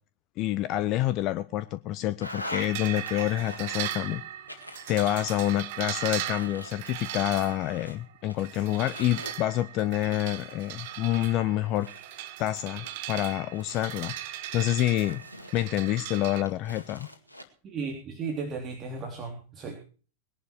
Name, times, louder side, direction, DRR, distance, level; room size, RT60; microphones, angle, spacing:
voice 1, 0.4-4.2 4.9-11.9 12.4-15.2 15.5-17.1, left 14 dB, 40° left, 14 dB, 0.7 m, -28 dB
sound 1, 2.2-2.7 3.1-4.0 4.5-5.6 6.0-8.0 8.3-9.8 10.4-12.3 12.8-14.1 14.7-16.0 16.5-17.4, equal, 85° left, 2.1 m, -43 dB
sound 2, 2.6-16.4, right 13 dB, 50° right, 1.3 m, -38 dB
voice 2, 17.6-19.7, right 4 dB, 30° right, 2 dB, 3.4 m, -35 dB
20.5 x 11.0 x 4.6 m, 0.39 s
figure-of-eight pair, 90°, 0 cm